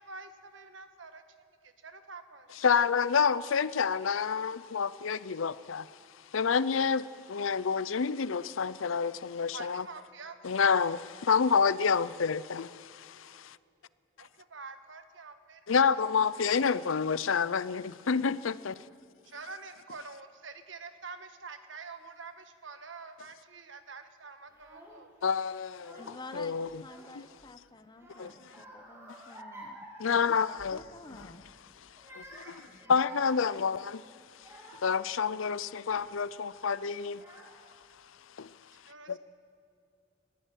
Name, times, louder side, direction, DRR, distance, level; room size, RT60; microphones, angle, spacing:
voice 1, 0.0-2.8 9.5-10.8 14.2-15.6 15.9-16.0 19.2-25.1 38.9-39.2, right 4 dB, 70° right, 1.4 m, -47 dB
voice 2, 2.6-5.9 6.3-9.8 10.4-13.6 15.7-18.7 25.2-26.0 26.3-26.8 28.2-28.6 30.0-30.8 32.1-34.0 34.8-37.2 38.4-38.5 39.1-39.2, left 6 dB, 80° left, 0.6 m, -28 dB
Child speech kid speaking / Crying sobbing, 24.5-25.1 25.7-26.4 26.7-27.5 28.0-30.8 31.1-31.4 31.9-35.0 35.6-36.0 36.8-36.9 37.1-37.9, right 1 dB, 15° right, 3.1 m, -51 dB
voice 3, 26.0-29.8 30.7-31.4, left 2 dB, 20° left, 0.9 m, -49 dB
21.5 x 14.5 x 9.2 m
head